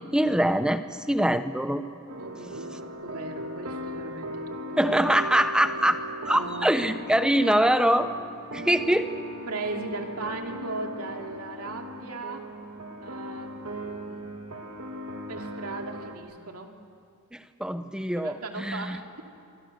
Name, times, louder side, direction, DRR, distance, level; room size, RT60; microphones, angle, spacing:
voice 1, 0.1-1.8 4.8-6.0 6.2-8.1 8.5-9.1 17.3-19.0, right 1 dB, 5° right, 9 dB, 0.9 m, -23 dB
sound 1, 2.1-16.2, equal, 70° right, 2.4 m, -38 dB
voice 2, 2.2-5.0 6.3-6.8 9.5-12.5 13.0-14.2 15.3-16.7 18.1-19.2, right 2 dB, 90° right, 2 dB, 2.6 m, -38 dB
27.5 x 24.0 x 6.7 m, 2.4 s
head